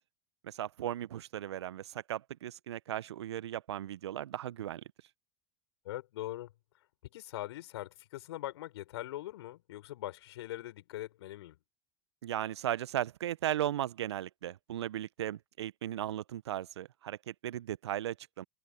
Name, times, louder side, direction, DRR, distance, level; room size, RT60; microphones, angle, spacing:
voice 1, 0.4-4.8 12.2-18.4, right 12 dB, 75° right, 1.1 m, -36 dB
voice 2, 5.8-11.6, left 15 dB, 70° left, 4.2 m, -42 dB
figure-of-eight pair, 80°, 14 cm